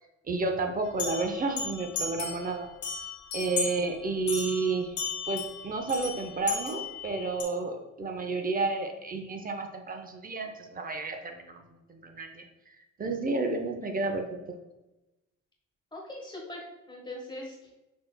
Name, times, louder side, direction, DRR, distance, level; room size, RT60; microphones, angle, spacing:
voice 1, 0.3-2.7 3.3-4.9 5.3-11.6 11.9-12.5 13.0-14.6, right 3 dB, 30° right, 4 dB, 0.6 m, -31 dB
sound 1, 1.0-2.5 2.8-3.8 4.3-7.4, left 5 dB, 75° left, 1.3 m, -35 dB
voice 2, 15.9-17.7, left 1 dB, 15° left, -1 dB, 1.2 m, -41 dB
6.2 x 3.3 x 2.3 m, 0.98 s
cardioid pair, 90°, 30 cm